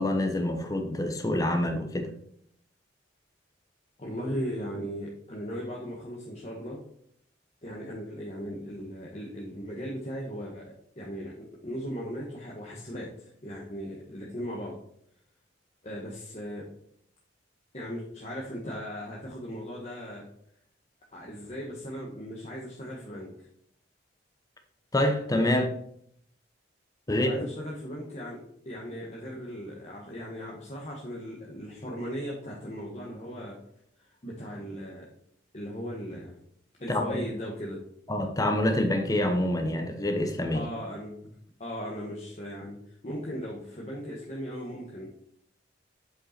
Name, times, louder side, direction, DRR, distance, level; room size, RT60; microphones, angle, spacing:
voice 1, 0.0-2.1 24.9-25.7 27.1-27.5 36.9-37.2 38.1-40.6, left 1 dB, 20° left, 0.9 m, -26 dB
voice 2, 4.0-6.8 7.6-14.8 15.8-16.7 17.7-20.3 21.1-23.5 27.1-33.6 34.0-35.1 35.5-36.3 36.8-37.8 40.5-41.3 41.6-45.1, equal, 35° left, 1.3 m, -38 dB
7.9 x 5.4 x 4.3 m
head